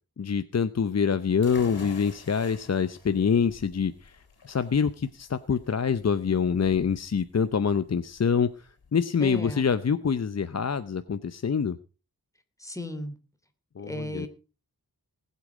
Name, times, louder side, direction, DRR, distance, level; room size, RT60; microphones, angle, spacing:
voice 1, 0.2-4.1 4.4-11.8 13.8-14.3, left 6 dB, 45° left, 12 dB, 0.7 m, -26 dB
sound 1, 1.4-8.9, left 4 dB, 80° left, 3.3 m, -48 dB
voice 2, 9.2-9.7 12.6-13.2 13.8-14.3, equal, 10° left, 7 dB, 2.9 m, -35 dB
19.5 x 8.4 x 5.0 m, 0.34 s
wide cardioid pair, 80°, 37 cm